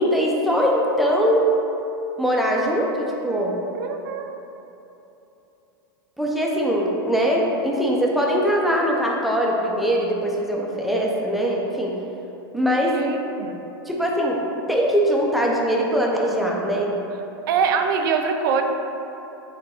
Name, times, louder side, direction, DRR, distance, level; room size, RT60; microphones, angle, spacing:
voice 1, 0.0-1.5 2.2-3.5 6.2-11.9 12.5-12.9 13.9-14.4 14.7-16.9, equal, ahead, -3 dB, 0.6 m, -21 dB
voice 2, 3.7-4.3 12.8-13.6 17.5-18.6, right 6 dB, 65° right, 5 dB, 0.4 m, -23 dB
5.1 x 2.2 x 4.3 m, 3.0 s
hypercardioid pair, 110°, 12 cm